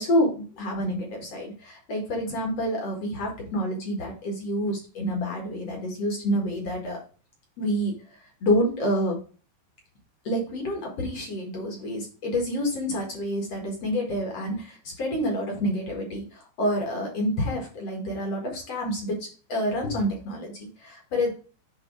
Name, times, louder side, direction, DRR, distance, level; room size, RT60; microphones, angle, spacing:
voice 1, 0.0-7.0 7.6-9.2 10.2-19.2 19.5-21.3, equal, 60° left, 0 dB, 1.7 m, -28 dB
8.8 x 3.5 x 4.7 m, 0.38 s
omnidirectional pair, 5.3 m